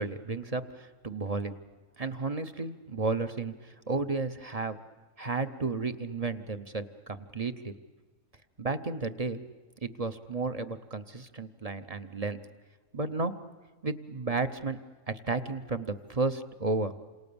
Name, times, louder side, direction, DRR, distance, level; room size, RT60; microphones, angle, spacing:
voice 1, 0.0-1.6 2.0-4.8 5.2-7.7 8.6-9.4 9.8-12.4 12.9-13.3 13.8-14.8 15.1-16.9, right 3 dB, 30° right, 9 dB, 0.8 m, -33 dB
28.5 x 27.0 x 7.0 m, 1.3 s
omnidirectional pair, 1.5 m